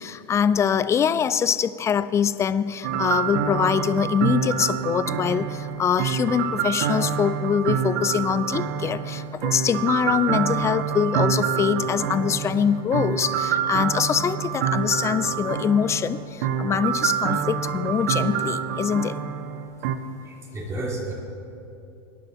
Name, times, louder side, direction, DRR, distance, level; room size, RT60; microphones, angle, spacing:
voice 1, 0.0-19.2, left 8 dB, 20° left, 15 dB, 0.4 m, -24 dB
sound 1, 2.8-20.0, right 8 dB, 60° right, 0.9 m, -27 dB
voice 2, 20.2-21.1, right 2 dB, 20° right, -2 dB, 3.3 m, -31 dB
24.0 x 10.5 x 2.8 m, 2.7 s
hypercardioid pair, 110°, 13 cm